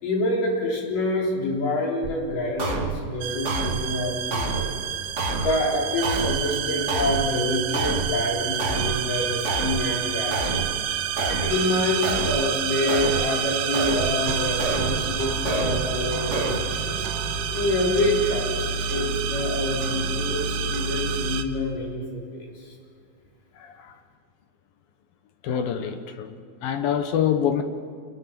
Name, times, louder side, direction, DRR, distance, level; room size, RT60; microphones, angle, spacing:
voice 1, 0.0-4.8 5.4-10.7 10.9-11.0 11.3-17.1 17.5-22.7, left 1 dB, 55° left, -2 dB, 5.4 m, -27 dB
sound 1, 2.0-2.2 2.6-3.0 3.4-3.9 4.3-4.7 5.2-5.6 6.0-6.4 6.9-7.3 7.7-8.2 8.6-9.0 9.4-9.9 10.3-10.7 11.2-11.6 12.0-12.4 12.9-13.3 13.7-14.2 14.6-15.0 15.4-15.9 16.3-16.6, right 3 dB, 40° right, 1.0 m, -28 dB
sound 2, 3.2-21.4, right 7 dB, 85° right, 3.2 m, -28 dB
voice 2, 23.6-24.0 25.4-27.6, left 9 dB, 70° left, 8 dB, 2.5 m, -27 dB
26.5 x 21.5 x 6.0 m, 2.3 s
omnidirectional pair, 4.7 m